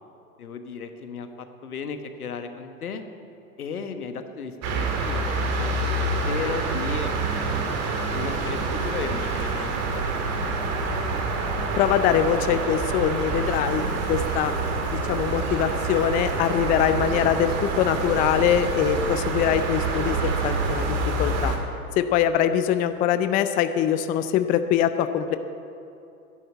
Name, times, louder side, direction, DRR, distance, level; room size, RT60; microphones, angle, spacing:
voice 1, 0.4-3.0 3.6-10.0 10.3-10.7, left 5 dB, 75° left, 8 dB, 1.5 m, -35 dB
sound 1, 4.6-21.6, right 3 dB, 35° right, 2.2 m, -27 dB
voice 2, 11.8-14.5 14.9-21.5 22.0-25.4, left 10 dB, 20° left, 10 dB, 0.4 m, -23 dB
11.5 x 9.9 x 9.9 m, 2.7 s
hypercardioid pair, 100°, 44 cm